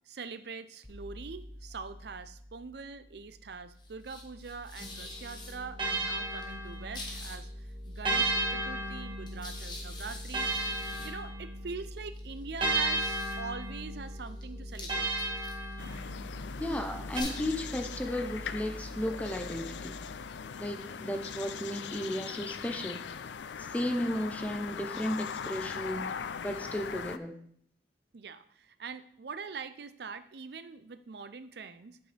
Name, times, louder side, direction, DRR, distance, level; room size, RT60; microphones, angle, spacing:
voice 1, 0.1-15.1 28.1-32.0, right 5 dB, 65° right, 12 dB, 0.5 m, -43 dB
sound 1, 0.8-20.7, left 1 dB, 25° left, 1.3 m, -44 dB
sound 2, 4.8-7.3 8.1-11.8 12.6-16.4 17.2-17.3, right 2 dB, 30° right, 1.6 m, -34 dB
sound 3, 15.8-27.2, left 7 dB, 85° left, 0.4 m, -40 dB
voice 2, 16.6-20.0 20.6-23.0 23.6-26.1 26.4-27.3, left 1 dB, 10° left, 5 dB, 0.7 m, -34 dB
8.7 x 8.0 x 3.4 m, 0.65 s
head